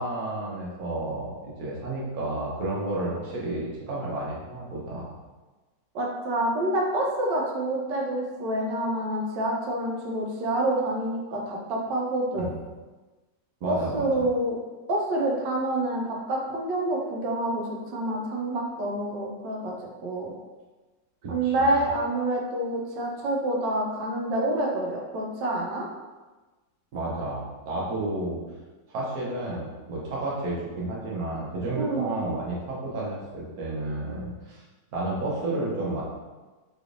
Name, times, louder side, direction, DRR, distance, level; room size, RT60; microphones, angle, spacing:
voice 1, 0.0-5.1 12.4-12.5 13.6-14.3 21.2-21.7 26.9-28.4 28.9-34.6 34.9-36.0, right 2 dB, 60° right, -5 dB, 1.4 m, -31 dB
voice 2, 5.9-12.5 13.7-14.6 14.9-19.7 20.0-20.3 21.3-25.9 31.8-32.1, right 1 dB, 80° right, -1 dB, 1.3 m, -27 dB
3.8 x 3.3 x 2.5 m, 1.2 s
omnidirectional pair, 1.9 m